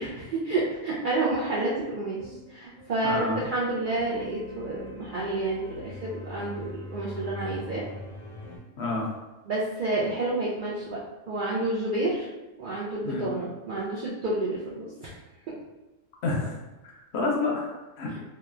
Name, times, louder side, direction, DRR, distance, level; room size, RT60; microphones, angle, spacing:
voice 1, 0.0-7.8 9.5-11.0 11.3-12.3 12.6-15.1, right 2 dB, 65° right, -7 dB, 0.5 m, -29 dB
sound 1, 0.5-8.6, left 1 dB, 85° left, 1.1 m, -43 dB
voice 2, 3.0-3.4 8.8-9.1 13.1-13.2 16.2-16.6 16.8-18.2, left 3 dB, 65° left, -2 dB, 0.7 m, -29 dB
2.9 x 2.2 x 2.3 m, 1.1 s
omnidirectional pair, 1.3 m